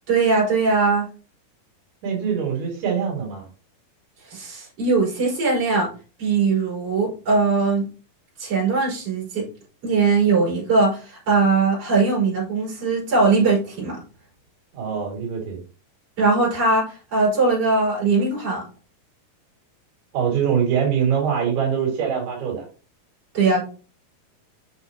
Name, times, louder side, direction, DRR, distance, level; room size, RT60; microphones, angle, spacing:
voice 1, 0.1-1.1 4.3-5.9 6.2-7.9 8.4-9.4 9.8-14.0 16.2-18.6 23.3-23.6, right 4 dB, 40° right, -6 dB, 4.8 m, -20 dB
voice 2, 2.0-3.5 14.7-15.6 20.1-22.7, right 7 dB, 85° right, -1 dB, 4.2 m, -23 dB
8.1 x 5.6 x 2.8 m, 0.37 s
omnidirectional pair, 4.4 m